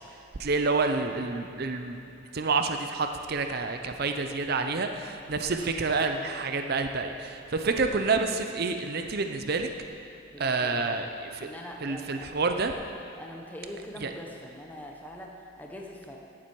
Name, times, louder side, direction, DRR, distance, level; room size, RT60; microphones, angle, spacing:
voice 1, 0.4-2.0 2.3-9.7 10.4-11.1 11.3-11.5 11.8-12.7 14.0-14.1, right 4 dB, 45° right, 6 dB, 0.6 m, -28 dB
voice 2, 10.3-11.0 11.4-12.3 13.1-16.2, left 1 dB, 10° left, 0 dB, 0.8 m, -43 dB
15.0 x 7.4 x 4.6 m, 2.6 s
head